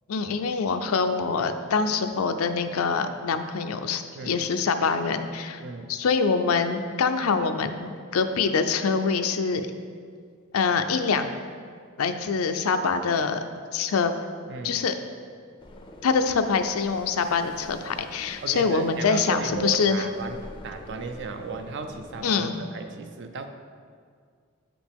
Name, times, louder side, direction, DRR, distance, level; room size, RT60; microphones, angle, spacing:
voice 1, 0.1-5.6 5.9-9.7 10.5-11.3 12.0-13.4 13.7-14.1 14.6-14.9 16.0-20.0 22.2-22.5, left 5 dB, 75° left, 8 dB, 0.5 m, -25 dB
voice 2, 5.6-5.9 14.5-14.9 18.4-23.5, right 4 dB, 55° right, 6 dB, 0.5 m, -35 dB
sound 1, 15.6-22.2, left 1 dB, 20° left, 0.5 m, -46 dB
8.5 x 5.1 x 3.5 m, 2.1 s
head